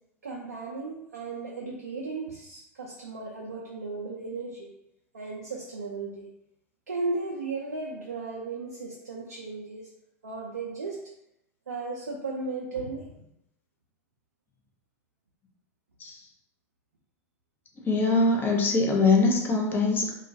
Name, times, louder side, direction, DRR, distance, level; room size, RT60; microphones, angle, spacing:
voice 1, 0.2-4.7 5.1-6.3 6.9-9.9 10.2-11.1 11.7-13.2, right 3 dB, 85° right, -2 dB, 0.4 m, -35 dB
voice 2, 17.9-20.1, left 3 dB, 25° left, 1 dB, 0.5 m, -22 dB
2.2 x 2.1 x 2.6 m, 0.80 s
hypercardioid pair, 90°, 8 cm